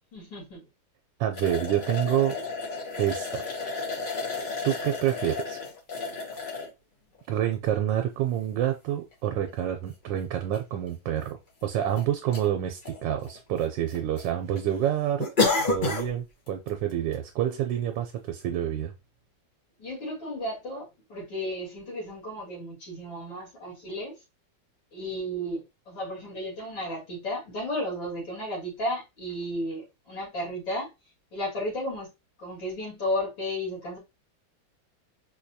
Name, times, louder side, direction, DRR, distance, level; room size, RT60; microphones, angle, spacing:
voice 1, 0.1-0.6 19.8-24.2 24.9-30.9 31.3-32.1 32.4-34.0, equal, 85° left, 2.8 m, -33 dB
voice 2, 1.2-2.4 3.0-3.4 4.6-5.6 7.3-15.3 15.6-18.9, right 11 dB, 80° right, 1.3 m, -28 dB
sound 1, 1.3-6.7 7.4-7.5 9.1-9.2 9.5-9.6 10.5-10.6 10.9-11.0 11.6-12.0 12.3-12.5 12.8-13.6 13.9-14.2 14.5-14.6 15.2-16.1 16.5-16.7 17.1-17.2, left 4 dB, 40° left, 0.7 m, -30 dB
4.7 x 2.3 x 2.6 m
omnidirectional pair, 2.0 m